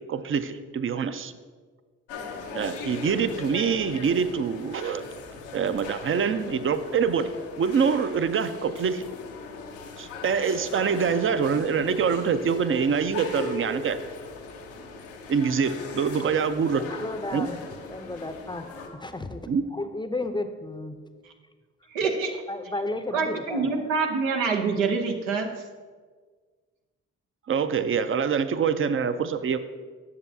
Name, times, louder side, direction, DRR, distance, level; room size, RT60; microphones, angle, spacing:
voice 1, 0.1-1.3 2.5-5.0 5.5-7.3 7.6-9.0 10.0-14.0 15.3-16.8 17.3-17.5 19.5-19.6 27.5-29.6, right 6 dB, 40° right, 12 dB, 0.6 m, -25 dB
sound 1, 2.1-18.9, left 3 dB, 90° left, 0.8 m, -39 dB
voice 2, 16.7-17.6 17.9-19.4 19.7-21.0 22.1-22.2 22.5-23.7, left 2 dB, 15° left, 8 dB, 0.6 m, -33 dB
voice 3, 21.9-22.4 23.1-25.5, right 4 dB, 85° right, 4 dB, 0.8 m, -26 dB
9.5 x 6.9 x 2.7 m, 1.5 s
hypercardioid pair, 45°, 33 cm